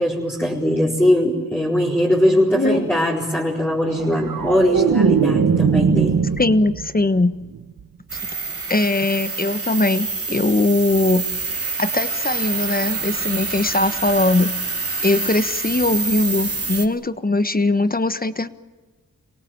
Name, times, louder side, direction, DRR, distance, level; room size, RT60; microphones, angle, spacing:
voice 1, 0.0-6.1, equal, 5° left, -5 dB, 4.6 m, -20 dB
voice 2, 2.5-2.9 6.4-7.3 8.7-11.2 11.8-14.5 15.0-18.5, left 2 dB, 25° left, 12 dB, 1.3 m, -20 dB
sound 1, 3.9-7.1 7.4-7.8, right 6 dB, 70° right, 1.6 m, -20 dB
sound 2, 8.1-16.9, right 4 dB, 40° right, 3.2 m, -27 dB
26.5 x 18.0 x 9.0 m, 1.3 s
cardioid pair, 50°, 36 cm